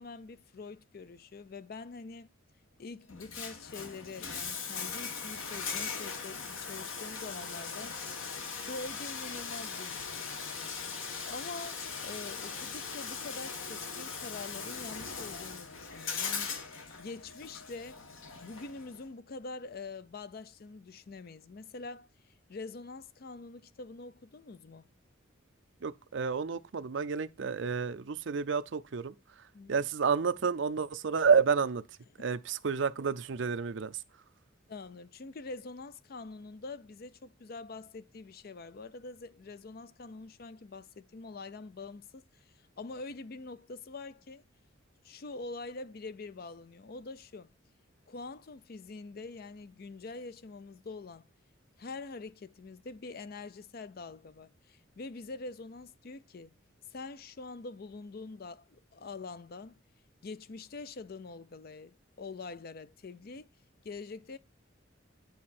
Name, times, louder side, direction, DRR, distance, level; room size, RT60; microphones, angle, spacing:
voice 1, 0.0-2.3 2.8-8.0 8.6-10.7 11.3-18.0 18.4-22.1 22.5-24.9 29.5-29.8 32.2-32.3 34.7-42.4 42.8-44.4 45.0-47.5 48.1-51.3 51.8-56.5 56.9-59.8 60.2-63.5 63.8-64.4, left 3 dB, 45° left, 0.5 m, -45 dB
Bathtub (filling or washing), 3.1-19.0, left 5 dB, 80° left, 1.4 m, -40 dB
voice 2, 25.8-29.4 29.7-31.8 32.2-34.0, right 5 dB, 65° right, 0.5 m, -30 dB
9.3 x 4.3 x 4.2 m
head